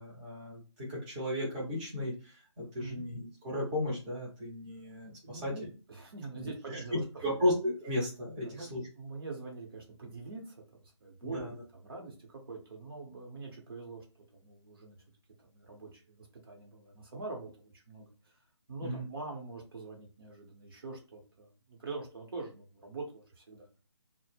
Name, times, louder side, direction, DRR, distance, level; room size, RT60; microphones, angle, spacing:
voice 1, 0.0-5.5 6.3-8.8 11.3-11.6 18.8-19.0, left 1 dB, 15° right, -5 dB, 0.7 m, -35 dB
voice 2, 5.2-7.4 8.4-14.0 14.3-15.0 15.4-18.4 18.7-23.7, right 3 dB, 50° right, 1 dB, 0.8 m, -44 dB
2.0 x 2.0 x 3.2 m, 0.34 s
figure-of-eight pair, 150°, 16 cm